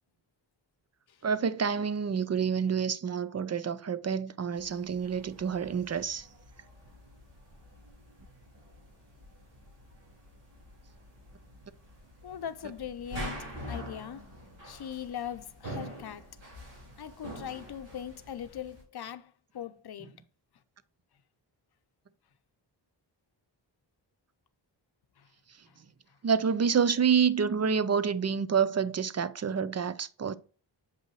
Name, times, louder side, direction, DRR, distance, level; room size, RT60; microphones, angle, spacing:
voice 1, 1.2-6.3 26.2-30.3, right 6 dB, 35° right, 0.6 m, -28 dB
sound 1, 4.6-18.8, equal, 80° right, 3.5 m, -46 dB
voice 2, 12.2-14.3 14.6-16.3 17.0-20.1 25.2-25.3 25.7-25.8, left 9 dB, 60° left, 0.7 m, -40 dB
7.8 x 5.4 x 3.1 m
cardioid pair, 75°, 44 cm